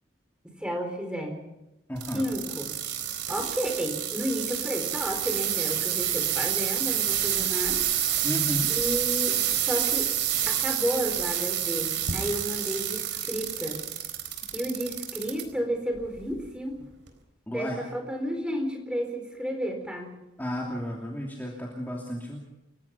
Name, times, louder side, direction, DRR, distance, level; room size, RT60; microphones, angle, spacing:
voice 1, 0.4-1.4 2.1-2.7 3.3-7.8 8.7-10.1 10.5-13.8 14.5-16.8 17.5-20.2, equal, 5° right, 4 dB, 4.2 m, -32 dB
voice 2, 1.9-2.2 8.2-8.7 17.5-17.8 20.4-22.4, equal, 10° left, -2 dB, 2.8 m, -33 dB
sound 1, 2.0-15.4 16.0-16.4 17.1-17.2, right 10 dB, 70° right, 4.1 m, -28 dB
28.5 x 16.0 x 5.9 m, 0.93 s
head